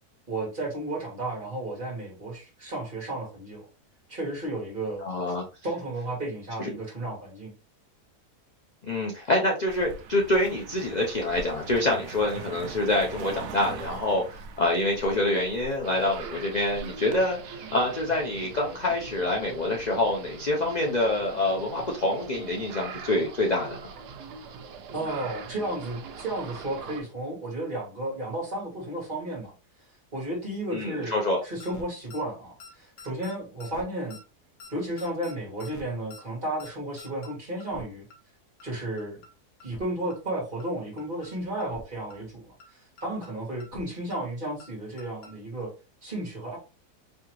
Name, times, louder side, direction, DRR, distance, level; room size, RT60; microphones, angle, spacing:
voice 1, 0.3-3.6 4.1-5.3 5.6-7.5 24.9-29.5 30.1-31.1 31.4-34.2 34.7-38.0 38.6-39.2 39.6-45.7 46.0-46.6, right 1 dB, 35° right, -2 dB, 1.7 m, -33 dB
voice 2, 5.0-5.5 6.6-6.7 8.8-23.9 30.7-31.4, left 1 dB, 50° left, 0 dB, 0.5 m, -26 dB
Car passing by, 9.7-17.2, right 5 dB, 65° right, 0.8 m, -42 dB
sound 1, 15.8-27.0, right 6 dB, 85° right, 1.3 m, -42 dB
sound 2, 31.6-31.8 32.1-32.2 32.6-32.7 33.0-33.3 33.6-33.8 34.1-34.2 34.6-34.7 35.0-35.3 35.6-35.8 36.1-36.2 36.6-36.7 37.0-37.3 37.6-37.8 38.1-38.2 38.6-38.7 39.0-39.3 39.6-39.8 40.1-40.2 40.6-40.7 41.0-41.3 41.6-41.8 42.1-42.2 42.6-42.7 43.0-43.3 43.6-43.8 44.1-44.2 44.6-44.7 45.0-45.3 45.6-45.7, left 3 dB, 90° left, 1.4 m, -46 dB
4.4 x 2.8 x 3.0 m, 0.32 s
omnidirectional pair, 1.7 m